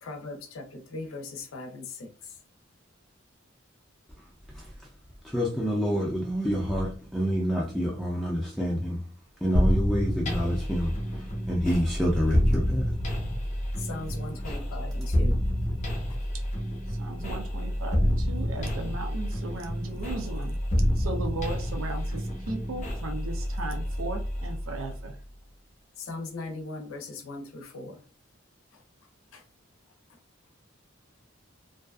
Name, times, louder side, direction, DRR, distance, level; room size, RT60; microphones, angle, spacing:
voice 1, 0.0-2.4 13.8-15.4 16.1-16.2 26.0-28.0 29.3-29.4, left 3 dB, 90° left, 0.5 m, -39 dB
voice 2, 5.2-9.0 9.4-13.0, equal, ahead, 0.4 m, -28 dB
sound 1, 9.6-25.2, equal, 35° left, 0.7 m, -28 dB
voice 3, 16.9-20.6 21.0-25.2, right 2 dB, 85° right, 0.5 m, -37 dB
2.5 x 2.3 x 2.3 m
head